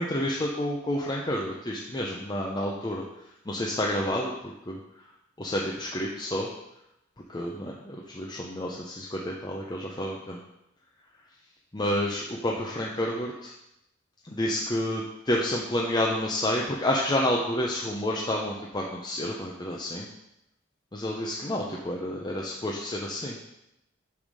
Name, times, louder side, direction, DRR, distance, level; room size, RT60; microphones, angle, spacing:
voice 1, 0.0-3.0 3.5-4.3 4.7-4.8 5.4-6.5 7.3-10.4 11.7-13.5 14.2-20.1 20.9-23.4, left 1 dB, 20° left, -3 dB, 0.7 m, -29 dB
8.7 x 3.5 x 6.4 m, 0.86 s
head